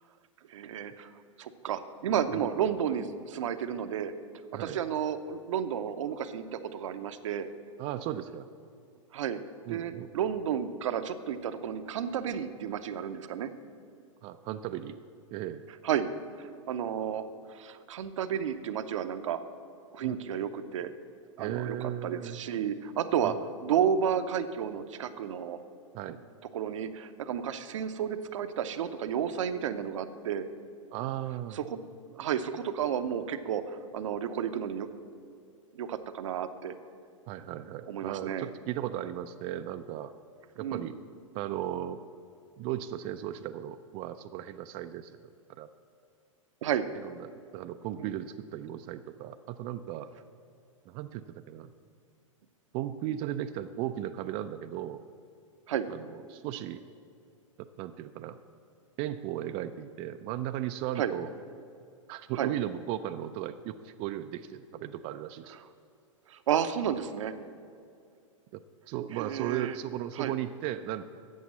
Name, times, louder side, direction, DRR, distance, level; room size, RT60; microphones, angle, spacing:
voice 1, 0.5-1.1 1.4-4.1 4.6-7.5 9.1-9.4 9.7-13.5 15.8-16.1 16.4-19.4 19.9-20.9 21.4-25.6 26.5-30.5 31.5-31.8 32.2-34.9 35.7-36.8 37.9-38.5 40.6-40.9 46.6-46.9 48.0-48.2 55.7-55.9 61.0-61.1 62.4-62.5 66.3-67.3 69.1-69.8 70.2-70.3, right 8 dB, 70° right, 10 dB, 0.7 m, -32 dB
voice 2, 7.8-8.5 9.7-10.1 14.2-15.0 15.3-15.6 20.0-20.2 21.4-22.4 23.2-23.4 25.9-26.2 30.9-31.6 37.3-40.1 40.6-41.0 41.3-42.0 42.6-45.2 45.6-45.7 46.9-50.1 50.9-51.7 52.7-55.0 55.9-56.8 57.6-58.4 59.0-61.3 62.1-65.6 68.5-71.0, right 12 dB, 35° right, 8 dB, 0.4 m, -36 dB
8.4 x 7.0 x 7.3 m, 2.4 s
hypercardioid pair, 110°, 17 cm